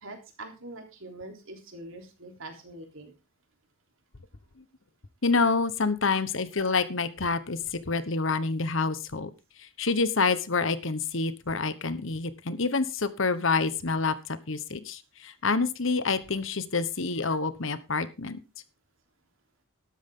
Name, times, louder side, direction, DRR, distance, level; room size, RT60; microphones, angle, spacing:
voice 1, 0.0-3.1, right 2 dB, 65° right, 4 dB, 3.5 m, -44 dB
voice 2, 5.2-9.3 9.8-18.4, left 4 dB, 60° left, 13 dB, 1.2 m, -27 dB
12.5 x 12.5 x 3.8 m, 0.29 s
head